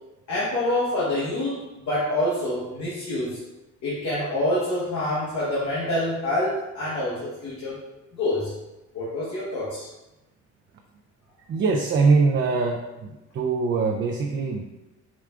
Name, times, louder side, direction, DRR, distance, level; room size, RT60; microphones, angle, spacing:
voice 1, 0.3-1.6 1.9-3.4 3.8-7.8 8.2-8.5 8.9-9.9, left 1 dB, 70° left, -7 dB, 1.2 m, -26 dB
voice 2, 11.4-14.6, right 4 dB, 40° right, 2 dB, 0.4 m, -23 dB
5.0 x 2.3 x 3.5 m, 0.98 s
cardioid pair, 90°, 30 cm